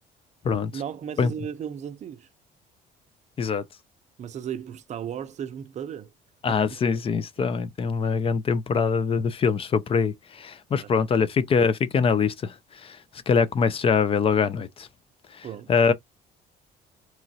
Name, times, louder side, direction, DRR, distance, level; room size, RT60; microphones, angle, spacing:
voice 1, 0.7-2.3 4.2-6.1 6.5-6.8 10.8-11.1 15.4-15.7, right 8 dB, 45° right, 0.5 m, -35 dB
voice 2, 6.4-13.0 13.3-14.9 15.3-15.9, left 5 dB, 35° left, 0.4 m, -23 dB
3.0 x 2.3 x 2.7 m
cardioid pair, 110°, 17 cm